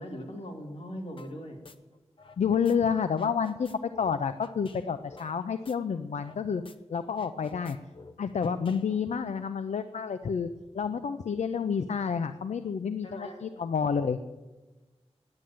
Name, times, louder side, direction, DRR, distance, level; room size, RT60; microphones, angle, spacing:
voice 1, 0.0-1.6 7.0-7.2 13.0-13.4, equal, 70° left, 1 dB, 2.7 m, -40 dB
sound 1, 1.2-1.4 1.6-2.8 3.0-6.4 6.6-6.8 7.1-9.2, left 3 dB, 50° left, 0.8 m, -51 dB
voice 2, 2.4-3.7 4.0-6.6 6.9-7.8 8.2-10.5 10.7-14.3, left 6 dB, 90° left, 10 dB, 0.5 m, -29 dB
10.5 x 8.6 x 9.2 m, 1.1 s
wide cardioid pair, 100°, 11 cm